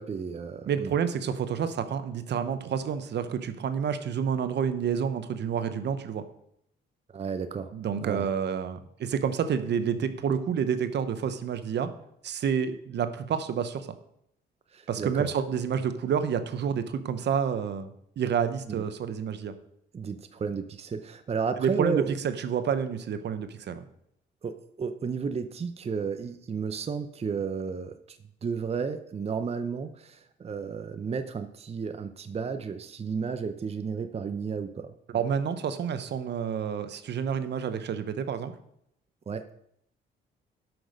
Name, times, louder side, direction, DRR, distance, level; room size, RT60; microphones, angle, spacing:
voice 1, 0.0-0.9 7.1-7.7 8.0-8.3 14.7-15.3 18.7-18.8 19.9-22.1 24.4-35.2 39.3-39.4, right 5 dB, 30° right, 9 dB, 0.6 m, -33 dB
voice 2, 0.7-6.2 7.7-11.9 12.2-13.9 14.9-17.9 18.2-19.5 21.6-23.8 35.1-38.5, right 7 dB, 60° right, 10 dB, 0.9 m, -29 dB
11.5 x 6.2 x 5.2 m, 0.73 s
cardioid pair, 90°, 20 cm